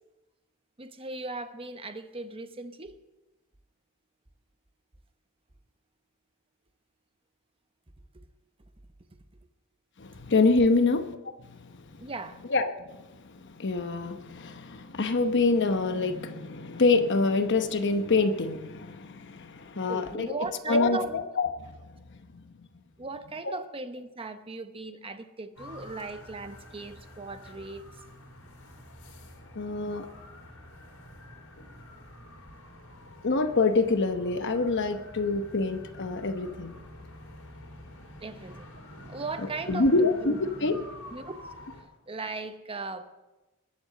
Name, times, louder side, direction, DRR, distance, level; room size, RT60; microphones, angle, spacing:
voice 1, 0.8-3.0 8.1-8.2 12.0-12.4 19.9-21.1 23.0-27.9 38.2-40.4 40.7-40.8 41.1-41.3 42.1-43.1, right 3 dB, 25° right, 0.9 m, -38 dB
voice 2, 10.0-12.1 12.5-20.3 20.7-22.4 23.4-23.6 29.5-30.1 33.2-36.8 39.7-40.8, left 3 dB, 55° left, 0.9 m, -26 dB
sound 1, 25.6-41.8, left 1 dB, 85° left, 3.6 m, -47 dB
21.0 x 7.8 x 6.7 m
head